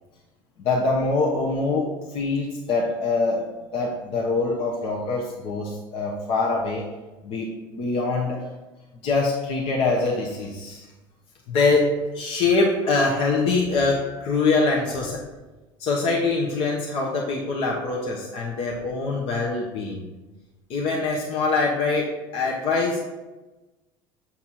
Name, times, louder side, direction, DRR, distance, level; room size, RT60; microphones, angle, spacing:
voice 1, 0.6-3.5 3.7-6.8 7.2-8.4 9.0-10.8 11.5-15.2 15.8-20.1 20.7-23.0, left 3 dB, 55° left, -2 dB, 1.1 m, -24 dB
7.6 x 4.2 x 4.2 m, 1.1 s
hypercardioid pair, 75°, 12 cm